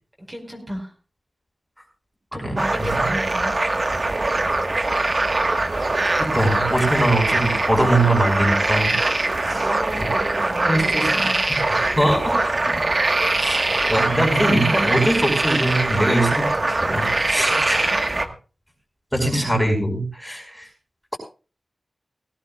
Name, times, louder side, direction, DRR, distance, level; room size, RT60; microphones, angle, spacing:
voice 1, 0.2-0.9 2.3-3.5 9.5-11.4 12.5-12.8 17.3-17.6, equal, 20° right, 0 dB, 5.0 m, -34 dB
sound 1, 2.6-18.3, right 2 dB, 45° right, 1.5 m, -22 dB
voice 2, 6.2-8.9 9.3-9.7 10.7-11.1 11.5-11.6 12.0-12.5 13.4-16.5 16.8-18.0 19.1-20.6, right 1 dB, 5° left, 1 dB, 5.1 m, -22 dB
18.0 x 17.0 x 2.4 m, 0.34 s
cardioid pair, 55°, 0 cm